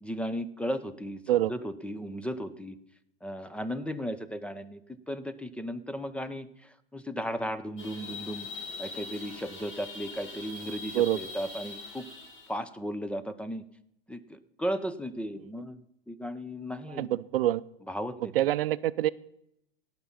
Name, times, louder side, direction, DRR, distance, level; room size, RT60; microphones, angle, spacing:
voice 1, 0.0-1.2 1.5-2.8 3.2-4.8 5.1-12.0 12.5-13.6 14.1-15.8 16.1-17.1 17.9-18.3, equal, 5° left, 12 dB, 0.6 m, -35 dB
sound 1, 7.8-12.5, left 3 dB, 55° left, 5.0 m, -42 dB
voice 2, 10.9-11.3 16.9-17.6 18.3-19.1, right 13 dB, 75° right, 18 dB, 0.5 m, -26 dB
17.0 x 6.0 x 5.6 m, 0.77 s
hypercardioid pair, 110°, 29 cm